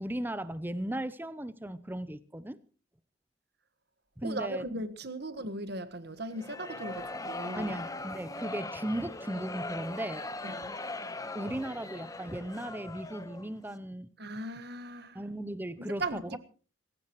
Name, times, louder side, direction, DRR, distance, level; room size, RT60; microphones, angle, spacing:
voice 1, 0.0-2.6 4.2-4.7 7.5-10.3 11.3-14.1 15.1-16.4, right 1 dB, 10° right, 0.7 m, -36 dB
voice 2, 4.2-7.7 10.4-10.8 14.2-15.2 15.8-16.4, right 2 dB, 50° right, 1.5 m, -38 dB
sound 1, 6.3-13.5, left 2 dB, 15° left, 1.0 m, -40 dB
27.0 x 15.5 x 3.1 m
head